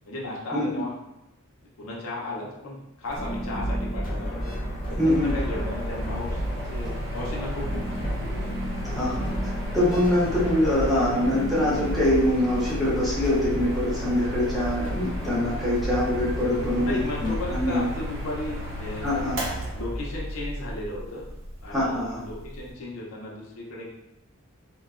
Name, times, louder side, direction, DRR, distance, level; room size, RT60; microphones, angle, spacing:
voice 1, 0.1-0.9 1.8-4.5 4.9-6.9 7.1-9.3 9.9-10.8 16.7-21.2 21.6-23.9, left 2 dB, 80° left, -3 dB, 0.7 m, -36 dB
Mechanical fan, 3.1-22.7, equal, 60° right, 0.7 m, -35 dB
sound 1, 3.2-17.6, equal, 40° left, 0.6 m, -33 dB
voice 2, 5.0-5.3 8.9-9.2 9.7-17.8 19.0-19.4 21.7-22.2, left 1 dB, ahead, -9 dB, 0.7 m, -24 dB
3.0 x 2.2 x 2.4 m, 0.87 s
head